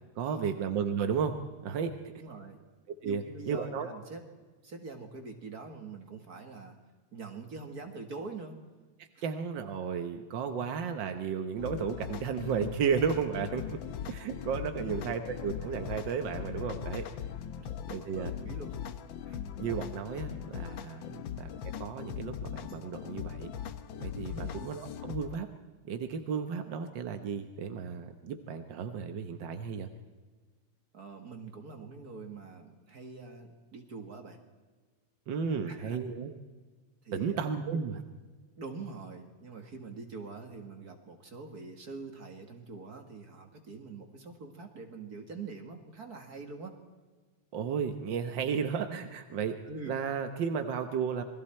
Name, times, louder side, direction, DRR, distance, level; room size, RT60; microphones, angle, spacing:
voice 1, 0.2-1.4 1.6-1.9 3.0-3.9 9.2-13.8 14.1-17.1 17.9-18.3 19.6-21.0 21.4-21.5 21.8-23.5 24.0-25.5 25.9-29.9 35.3-36.3 37.1-38.0 47.5-49.6 49.8-51.2, right 6 dB, 65° right, 7 dB, 1.1 m, -33 dB
voice 2, 2.2-2.6 3.0-4.2 4.6-6.8 7.1-8.6 14.7-15.1 17.5-17.7 18.0-18.8 19.2-19.4 21.0-21.3 24.3-24.5 30.9-34.4 35.5-36.0 37.0-37.5 37.7-37.8 38.6-46.8 49.6-50.0, right 4 dB, 40° right, 4 dB, 1.7 m, -44 dB
sound 1, 11.6-25.4, left 8 dB, 85° left, 1.0 m, -40 dB
27.5 x 21.5 x 4.4 m, 1.3 s
omnidirectional pair, 3.4 m